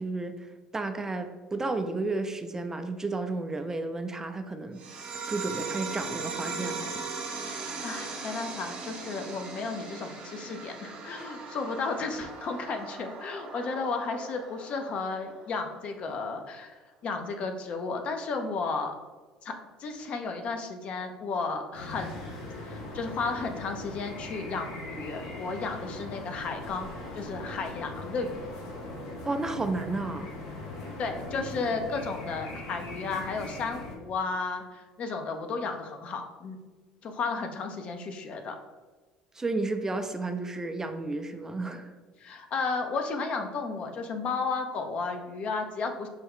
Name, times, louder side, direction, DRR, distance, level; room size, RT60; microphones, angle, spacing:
voice 1, 0.0-6.9 11.2-11.3 29.2-30.3 39.3-41.9, right 3 dB, 20° right, 7 dB, 0.4 m, -32 dB
sound 1, 4.8-15.8, right 4 dB, 55° right, 0.8 m, -39 dB
voice 2, 7.8-18.9 19.4-19.5 19.8-22.2 22.6-28.5 31.0-36.6 37.0-38.6 42.2-46.1, left 4 dB, 50° left, 5 dB, 0.5 m, -33 dB
sound 2, 21.7-33.9, left 2 dB, 80° left, 0.8 m, -40 dB
4.7 x 2.3 x 3.5 m, 1.3 s
hypercardioid pair, 65°, 3 cm